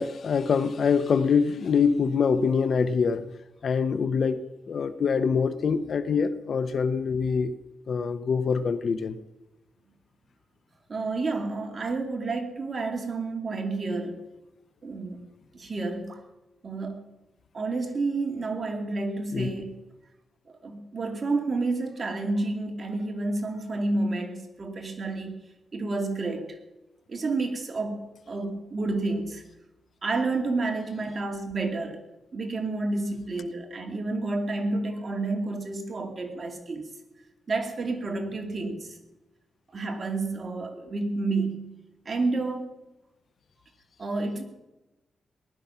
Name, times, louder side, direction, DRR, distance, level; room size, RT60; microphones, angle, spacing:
voice 1, 0.0-3.3 3.6-7.5 7.9-9.2 19.3-19.5, left 5 dB, 65° left, 13 dB, 0.9 m, -25 dB
voice 2, 10.9-14.3 14.8-15.3 15.5-16.2 16.6-17.1 17.5-19.8 20.5-25.4 25.7-26.6 27.1-28.0 28.3-29.4 30.0-32.0 32.3-36.9 37.5-39.0 39.7-41.8 42.0-42.7 44.0-44.4, right 3 dB, 45° right, 4 dB, 2.6 m, -30 dB
19.0 x 12.0 x 5.8 m, 1.0 s
cardioid pair, 85°, 0 cm